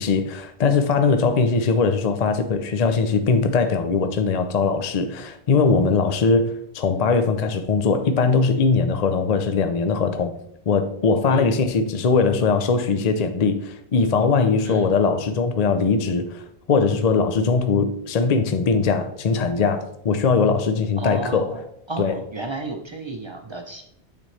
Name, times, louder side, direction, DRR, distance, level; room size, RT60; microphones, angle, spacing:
voice 1, 0.0-10.3 10.7-21.6 22.0-22.2, left 4 dB, 50° left, 0.5 m, -21 dB
voice 2, 11.3-11.6 14.6-15.0 21.0-21.6 21.9-23.8, right 2 dB, 35° right, 0.5 m, -32 dB
9.0 x 4.2 x 3.2 m
omnidirectional pair, 1.1 m